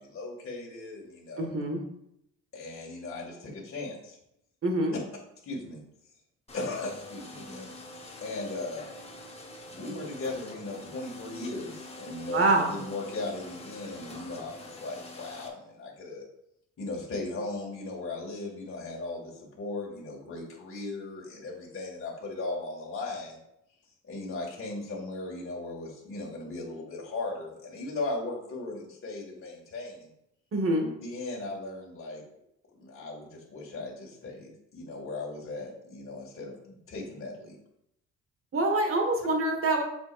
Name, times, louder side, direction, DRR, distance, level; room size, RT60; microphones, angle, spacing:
voice 1, 0.0-1.5 2.5-4.2 5.4-5.8 6.5-7.7 8.2-8.9 9.7-16.2 16.8-23.4 24.1-30.1 31.0-32.2 32.8-37.6, left 2 dB, 45° left, -3 dB, 2.3 m, -37 dB
voice 2, 1.4-1.8 4.6-5.0 12.3-12.7 30.5-30.9 38.5-39.8, right 2 dB, 45° right, 3 dB, 1.8 m, -25 dB
sound 1, 6.5-15.5, left 1 dB, 20° left, 1.4 m, -45 dB
8.0 x 6.1 x 2.6 m, 0.78 s
cardioid pair, 90°, 30 cm